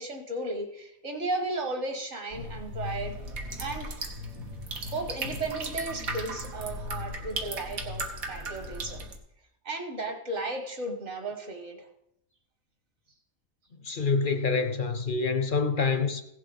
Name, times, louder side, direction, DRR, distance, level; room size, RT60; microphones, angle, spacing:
voice 1, 0.0-3.2 3.6-4.1 4.9-8.0 8.3-9.1 9.6-11.9, right 2 dB, 55° right, 1.9 m, -34 dB
sound 1, 2.3-9.2, right 1 dB, 80° right, 1.7 m, -36 dB
voice 2, 13.8-16.2, left 4 dB, 50° left, 0.7 m, -26 dB
16.0 x 7.5 x 4.0 m
omnidirectional pair, 1.5 m